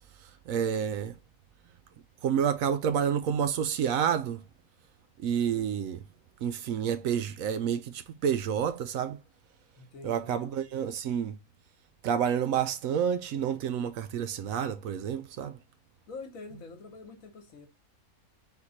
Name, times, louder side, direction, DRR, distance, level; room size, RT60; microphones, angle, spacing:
voice 1, 0.5-1.1 2.2-4.4 5.2-6.0 6.4-9.2 10.0-11.4 12.0-15.6, right 8 dB, 70° right, 0.9 m, -29 dB
voice 2, 9.7-10.4 16.1-17.7, left 3 dB, 65° left, 1.4 m, -45 dB
4.1 x 3.0 x 3.9 m
omnidirectional pair, 1.6 m